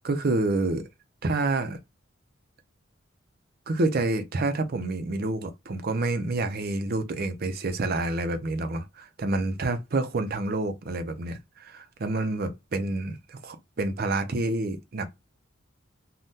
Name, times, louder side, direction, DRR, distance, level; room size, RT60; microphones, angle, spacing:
voice 1, 0.0-0.9 1.2-1.8 3.7-15.1, right 2 dB, 50° right, 0.5 m, -28 dB
2.7 x 2.2 x 3.4 m
head